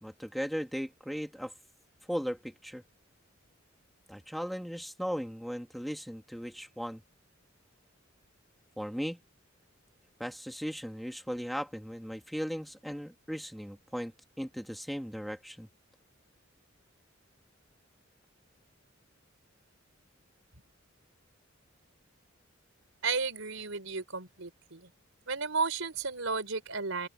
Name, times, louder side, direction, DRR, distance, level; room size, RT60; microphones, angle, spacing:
voice 1, 0.0-1.5 2.1-2.8 4.1-7.0 8.8-9.2 10.2-14.1 14.4-15.7, equal, ahead, 1.8 m, -37 dB
voice 2, 23.0-24.9 25.3-27.1, right 4 dB, 80° right, 4.2 m, -33 dB
open air
head